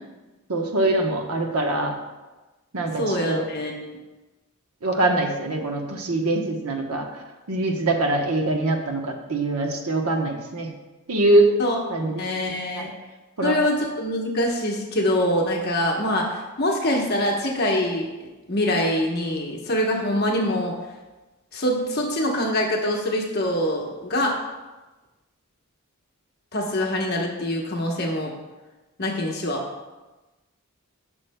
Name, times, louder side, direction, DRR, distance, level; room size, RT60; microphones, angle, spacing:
voice 1, 0.5-1.9 2.7-3.5 4.8-7.1 7.5-10.7 11.1-11.5 11.9-12.2 12.7-12.9 13.4-13.6, right 2 dB, 85° right, 3 dB, 1.0 m, -23 dB
voice 2, 2.9-4.0 11.6-12.9 13.4-20.7 21.5-24.4 26.5-28.3 29.0-29.6, left 1 dB, 45° left, -1 dB, 1.1 m, -24 dB
12.0 x 6.2 x 2.2 m, 1.1 s
head